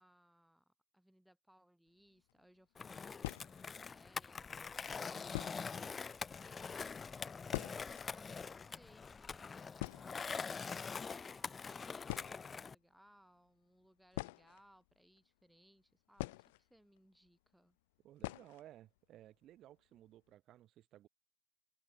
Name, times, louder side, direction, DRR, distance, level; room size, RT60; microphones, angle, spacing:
voice 1, 0.0-9.7 10.3-17.8, equal, ahead, 6.1 m, -68 dB
sound 1, 2.2-2.3 3.2-3.9 4.7-4.8 5.3-5.8 6.1-6.2 6.5-6.6 7.0-8.1 8.4-8.5 8.7-9.0 9.4-9.5 9.8-10.7 11.6-11.7 12.0-12.6 14.1-15.2 16.2-17.0 17.3-17.4 18.2-18.7 19.0-19.1 19.4-19.5 20.0-20.3, left 21 dB, 90° left, 0.4 m, -44 dB
Skateboard, 2.8-12.7, left 5 dB, 15° left, 1.1 m, -44 dB
voice 2, 18.0-21.1, right 13 dB, 35° right, 6.8 m, -58 dB
open air
cardioid pair, 170°, 0 cm